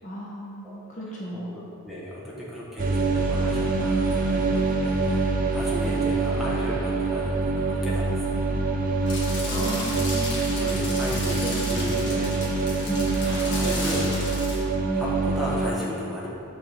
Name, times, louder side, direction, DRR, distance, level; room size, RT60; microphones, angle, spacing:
voice 1, 0.0-1.7 9.5-12.0 12.8-13.3, equal, 35° left, -4 dB, 0.9 m, -36 dB
voice 2, 0.6-8.4 9.4-9.9 10.5-12.9 13.6-14.2 14.9-16.3, equal, ahead, -7 dB, 1.1 m, -36 dB
sound 1, 2.8-15.7, right 3 dB, 40° right, 0.6 m, -25 dB
sound 2, 9.1-14.6, left 2 dB, 50° left, 1.5 m, -34 dB
6.4 x 3.7 x 6.1 m, 2.5 s
head